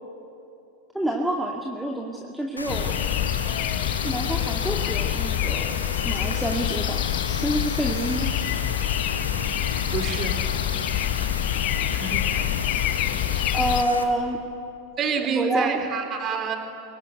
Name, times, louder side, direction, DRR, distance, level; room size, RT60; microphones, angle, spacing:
voice 1, 0.9-3.0 4.0-5.8 6.0-7.0 7.4-8.3 13.5-14.4 15.3-15.8, right 1 dB, 5° right, -1 dB, 2.2 m, -27 dB
Rain, 2.6-14.0, left 2 dB, 80° left, 1.9 m, -33 dB
sound 1, 2.7-13.8, left 13 dB, 40° left, 1.1 m, -26 dB
voice 2, 9.9-10.4 11.9-12.6 15.0-16.6, right 7 dB, 30° right, 5 dB, 3.9 m, -28 dB
27.5 x 23.0 x 9.4 m, 2.7 s
figure-of-eight pair, 90°, 0 cm